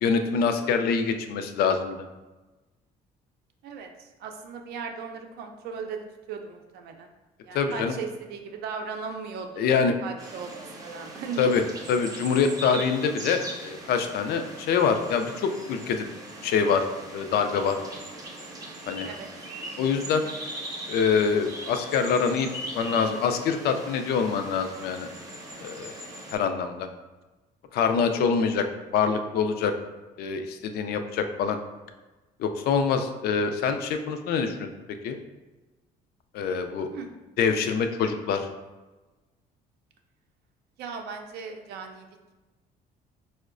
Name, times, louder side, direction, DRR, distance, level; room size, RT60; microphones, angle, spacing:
voice 1, 0.0-2.0 7.5-7.9 9.6-9.9 11.4-11.6 11.9-16.1 16.4-16.8 17.1-17.8 18.9-19.1 19.8-20.3 20.9-22.5 22.7-25.1 25.6-25.9 26.3-26.9 27.7-28.7 28.9-29.7 30.2-31.6 32.4-34.7 35.0-35.2 36.3-36.9 37.4-38.5, left 6 dB, 70° left, 7 dB, 0.4 m, -25 dB
voice 2, 3.6-7.1 7.4-9.7 10.0-11.6 19.0-19.3 28.2-28.3 36.9-37.1 40.8-42.1, right 5 dB, 70° right, 4 dB, 0.5 m, -37 dB
sound 1, 10.2-26.4, right 1 dB, 20° right, 0.6 m, -40 dB
4.5 x 2.1 x 2.4 m, 1.2 s
cardioid pair, 110°, 17 cm